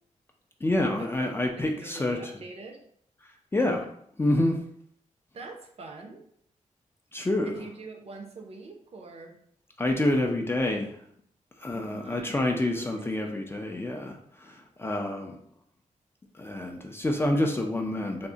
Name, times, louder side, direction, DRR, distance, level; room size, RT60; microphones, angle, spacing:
voice 1, 0.6-2.2 3.5-3.8 4.2-4.6 7.1-7.6 9.8-11.0 11.6-15.3 16.4-18.3, left 1 dB, 15° left, 2 dB, 0.3 m, -27 dB
voice 2, 1.5-2.8 3.6-3.7 5.3-6.2 7.4-9.4 11.7-13.4, right 3 dB, 50° right, 3 dB, 0.6 m, -44 dB
3.5 x 2.1 x 3.8 m, 0.65 s
wide cardioid pair, 160°, 14 cm